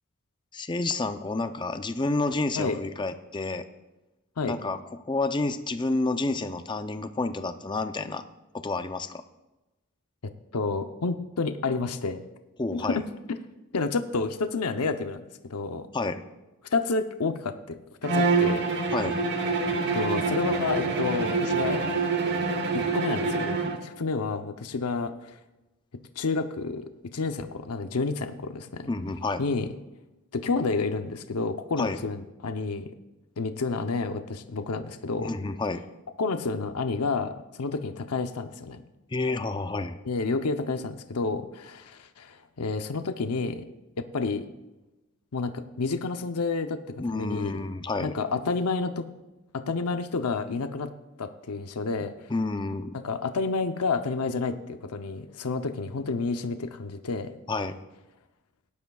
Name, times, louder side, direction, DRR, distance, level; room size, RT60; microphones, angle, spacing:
voice 1, 0.5-3.6 4.4-4.8 5.1-8.2 8.6-9.2 12.6-13.0 15.9-16.2 18.9-19.2 28.9-29.4 31.8-32.0 35.2-35.8 39.1-40.0 47.0-48.1 52.3-52.9 57.5-57.8, left 3 dB, 20° left, 10 dB, 0.5 m, -29 dB
voice 2, 10.5-12.3 12.7-13.0 13.7-15.2 15.5-15.9 16.7-17.6 18.0-18.6 19.9-21.8 22.7-23.6 23.8-25.4 26.2-28.9 29.4-29.7 30.3-32.9 33.4-35.3 36.2-38.8 40.1-43.6 44.0-44.5 45.3-46.8 47.1-47.6 48.0-49.1 49.5-50.9 51.2-52.3 53.0-57.3, left 4 dB, 90° left, 8 dB, 0.7 m, -29 dB
Bowed string instrument, 18.0-23.9, right 3 dB, 50° right, 1.1 m, -26 dB
18.0 x 10.5 x 2.3 m, 1.0 s
head